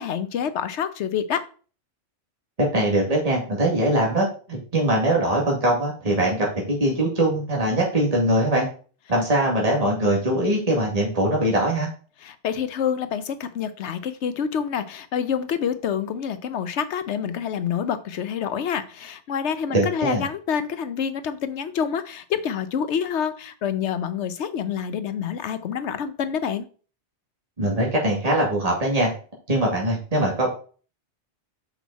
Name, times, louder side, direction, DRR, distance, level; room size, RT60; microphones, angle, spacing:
voice 1, 0.0-1.5 12.2-26.7, left 7 dB, 90° left, 1.0 m, -27 dB
voice 2, 2.6-8.7 9.1-11.9 19.7-20.3 27.6-29.1 29.5-30.5, right 1 dB, 35° right, 2.3 m, -22 dB
6.2 x 5.6 x 4.1 m
omnidirectional pair, 1.1 m